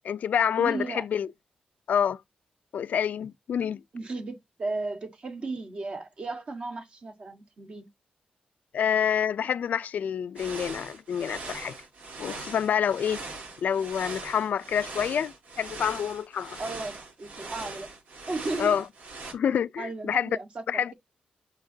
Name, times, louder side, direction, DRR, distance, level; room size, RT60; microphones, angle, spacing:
voice 1, 0.0-1.3 1.9-2.2 2.7-3.8 8.7-11.8 12.2-13.2 13.6-16.6 18.6-18.8 19.3-20.3 20.7-20.9, left 8 dB, 75° left, 0.4 m, -27 dB
voice 2, 0.6-1.0 3.9-7.9 16.6-17.9 18.3-18.8 19.8-20.6, right 3 dB, 40° right, 1.6 m, -35 dB
sound 1, 10.4-19.3, right 3 dB, 70° right, 3.3 m, -41 dB
7.1 x 5.9 x 2.7 m
wide cardioid pair, 135°, 3 cm